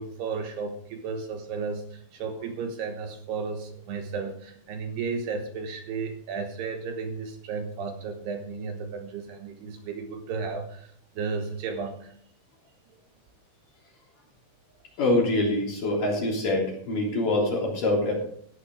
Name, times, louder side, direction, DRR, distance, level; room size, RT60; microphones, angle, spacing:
voice 1, 0.0-12.1, right 5 dB, 70° right, 5 dB, 3.0 m, -34 dB
voice 2, 15.0-18.1, left 2 dB, 50° left, -1 dB, 4.5 m, -25 dB
14.5 x 9.8 x 4.8 m, 0.63 s
omnidirectional pair, 5.3 m